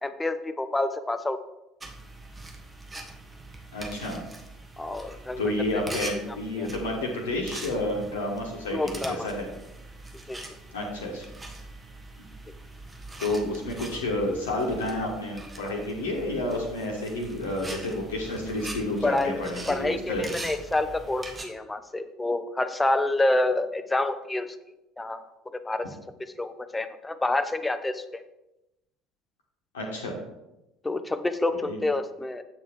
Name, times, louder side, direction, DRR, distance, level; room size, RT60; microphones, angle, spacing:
voice 1, 0.0-1.4 4.8-5.5 6.0-6.7 8.7-9.3 10.3-10.4 19.0-19.4 19.7-24.5 25.0-25.2 25.5-25.9 26.4-28.2 30.8-32.4, left 2 dB, 15° left, 10 dB, 0.7 m, -28 dB
sound 1, 1.8-21.4, right 2 dB, 20° right, 1.4 m, -42 dB
voice 2, 3.7-4.2 5.4-8.8 9.1-9.5 10.7-11.3 13.2-20.2 29.7-30.1 31.6-31.8, left 1 dB, 70° left, -1 dB, 1.2 m, -30 dB
7.9 x 7.2 x 3.5 m, 0.93 s
figure-of-eight pair, 60°, 0 cm